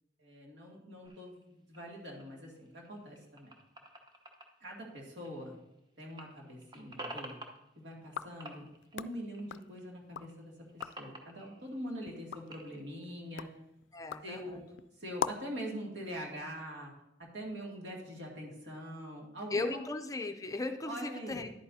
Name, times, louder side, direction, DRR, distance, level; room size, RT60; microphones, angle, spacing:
voice 1, 0.2-3.5 4.6-5.5 6.0-7.4 7.8-13.5 14.2-14.6 14.9-16.9 17.2-19.8 20.8-21.4, equal, 70° right, -1 dB, 2.3 m, -43 dB
sound 1, 1.0-5.8 6.0-8.2 8.4-9.9 10.2-12.8, right 1 dB, 25° right, 0.9 m, -50 dB
sound 2, 8.0-10.3 10.7-11.1 11.6-15.6, left 7 dB, 85° left, 0.3 m, -43 dB
voice 2, 13.9-14.5 19.5-21.5, left 3 dB, 20° left, 7 dB, 0.5 m, -37 dB
11.0 x 8.7 x 2.7 m, 0.89 s
head